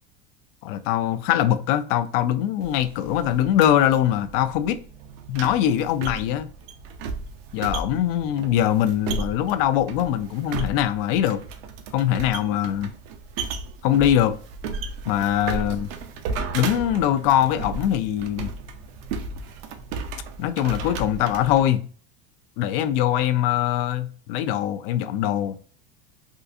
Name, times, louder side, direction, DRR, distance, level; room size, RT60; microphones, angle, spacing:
voice 1, 0.6-4.8 5.3-6.5 7.5-11.4 11.9-12.9 13.8-14.3 15.1-15.9 16.5-18.5 20.4-21.8 22.6-25.6, left 11 dB, 65° left, 0.5 m, -22 dB
sound 1, 2.6-21.7, right 4 dB, 75° right, 0.6 m, -35 dB
3.6 x 2.4 x 2.6 m
cardioid pair, 160°, 30 cm